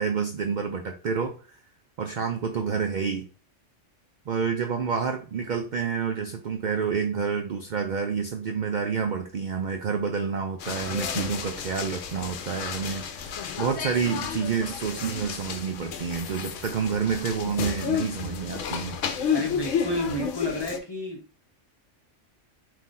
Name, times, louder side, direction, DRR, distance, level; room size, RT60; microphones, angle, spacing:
voice 1, 0.0-1.6 2.0-3.3 4.3-19.0, right 6 dB, 60° right, 4 dB, 0.5 m, -29 dB
sound 1, 10.6-20.8, left 7 dB, 85° left, 1.0 m, -31 dB
voice 2, 19.3-21.2, equal, 25° left, -1 dB, 0.7 m, -31 dB
3.8 x 2.7 x 4.1 m, 0.36 s
omnidirectional pair, 1.3 m